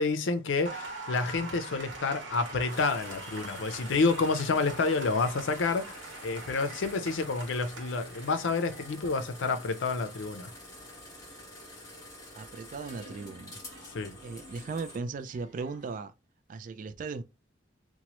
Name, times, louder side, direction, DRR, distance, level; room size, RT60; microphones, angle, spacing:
voice 1, 0.0-10.5 13.9-14.2, left 4 dB, 90° left, 0.5 m, -29 dB
Applause, 0.6-16.0, right 2 dB, 80° right, 1.0 m, -45 dB
sound 1, 2.7-15.0, left 1 dB, 20° left, 1.3 m, -48 dB
voice 2, 12.3-13.6 14.2-16.1 16.5-17.2, right 4 dB, 45° right, 0.3 m, -37 dB
3.0 x 2.2 x 2.9 m
head